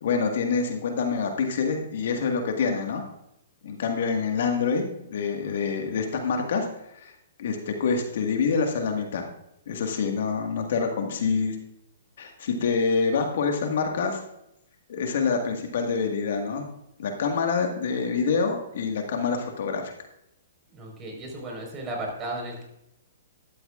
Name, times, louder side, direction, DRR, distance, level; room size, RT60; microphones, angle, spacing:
voice 1, 0.0-3.0 3.6-6.7 7.0-7.1 7.4-9.3 9.7-11.6 12.2-14.2 14.9-16.7 17.0-19.9, left 5 dB, 65° left, 3 dB, 1.8 m, -26 dB
voice 2, 20.7-22.6, right 1 dB, 25° right, 0 dB, 4.6 m, -34 dB
13.0 x 12.5 x 2.5 m, 0.81 s
hypercardioid pair, 130°, 0 cm